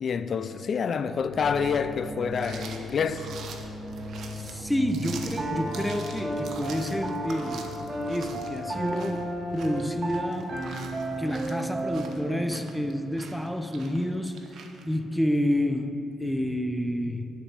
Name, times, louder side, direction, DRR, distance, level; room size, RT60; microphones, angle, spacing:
voice 1, 0.0-3.3, left 6 dB, 50° left, 0.4 m, -27 dB
sound 1, 1.1-13.2 13.5-14.0, left 1 dB, 25° left, 2.1 m, -41 dB
sound 2, 2.3-14.9, right 5 dB, 65° right, 0.9 m, -45 dB
voice 2, 4.3-7.7 8.1-10.6 11.2-14.5 14.9-17.3, equal, ahead, 0.6 m, -29 dB
Piano, 5.4-12.2, right 1 dB, 35° right, 1.6 m, -33 dB
10.0 x 4.2 x 7.5 m
cardioid pair, 90°, 0 cm